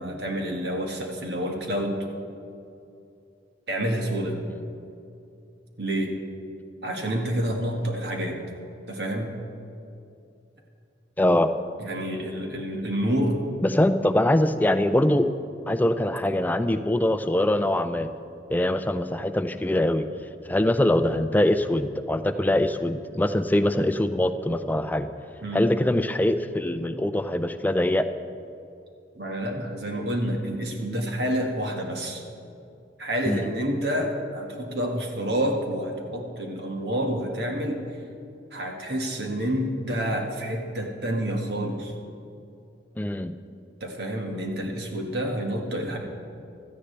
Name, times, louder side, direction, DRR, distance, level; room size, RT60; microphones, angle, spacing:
voice 1, 0.0-2.0 3.7-4.4 5.8-6.2 6.8-8.4 8.9-9.3 11.8-13.4 25.4-25.6 29.1-32.2 33.0-37.8 38.5-41.9 43.8-46.0, equal, 60° right, 1 dB, 1.6 m, -28 dB
voice 2, 11.2-11.5 13.6-15.3 15.7-18.1 18.5-20.1 20.5-25.1 25.5-28.1 33.3-33.5 43.0-43.3, left 1 dB, 10° left, 10 dB, 0.4 m, -23 dB
16.5 x 13.0 x 3.3 m, 2.6 s
head